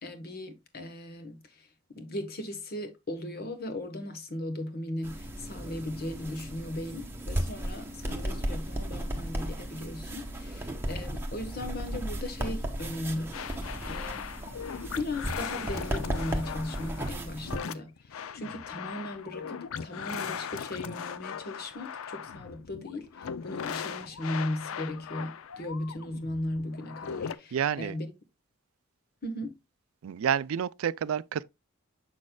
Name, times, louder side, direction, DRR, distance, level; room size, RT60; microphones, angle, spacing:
voice 1, 0.0-13.4 13.8-14.3 14.9-28.1 29.2-29.6, left 1 dB, 45° left, 1.2 m, -37 dB
sound 1, 5.0-17.6, right 1 dB, 10° right, 1.0 m, -35 dB
sound 2, 13.3-27.4, left 7 dB, 85° left, 0.5 m, -39 dB
voice 2, 27.5-27.9 30.0-31.4, right 8 dB, 85° right, 0.4 m, -29 dB
7.4 x 6.3 x 2.2 m
head